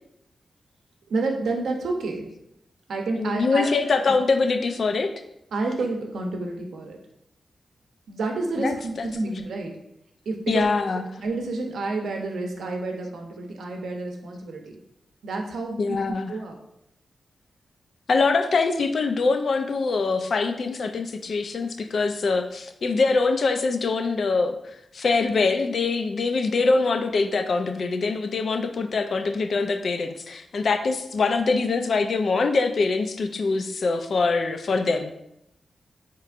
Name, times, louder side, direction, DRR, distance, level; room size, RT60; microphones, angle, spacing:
voice 1, 1.1-2.3 2.9-3.7 5.5-7.0 8.1-9.7 10.3-10.7 11.2-14.8 15.2-15.8 16.3-16.5, right 3 dB, 90° right, 3 dB, 0.6 m, -29 dB
voice 2, 3.1-5.1 8.6-9.3 10.5-11.1 15.8-16.4 18.1-24.6 24.9-35.1, left 4 dB, 55° left, 7 dB, 0.3 m, -24 dB
4.4 x 2.9 x 2.4 m, 0.80 s
wide cardioid pair, 120°, 0 cm